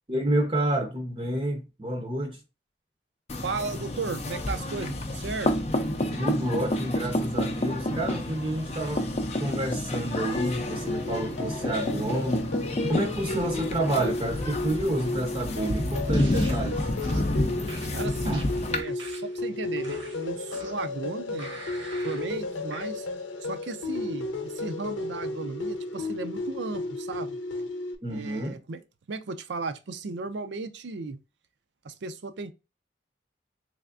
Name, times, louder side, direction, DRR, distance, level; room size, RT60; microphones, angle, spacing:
voice 1, 0.1-2.4 6.2-9.1 9.4-12.5 12.8-16.8 18.2-18.4 28.0-28.6, right 1 dB, 25° right, 0.6 m, -29 dB
sound 1, 3.3-18.8, left 1 dB, 35° left, 0.5 m, -29 dB
voice 2, 3.4-5.5 17.9-21.6 22.0-23.1 23.4-27.4 28.1-28.8 29.1-31.2 31.8-32.5, right 4 dB, 70° right, 0.5 m, -35 dB
sound 2, 10.4-27.9, left 2 dB, 85° left, 0.7 m, -34 dB
sound 3, 16.1-16.6 17.0-17.3 17.7-19.4 19.8-20.9 21.4-22.3 22.7-22.9, right 2 dB, 90° right, 1.3 m, -43 dB
3.5 x 3.3 x 2.4 m
head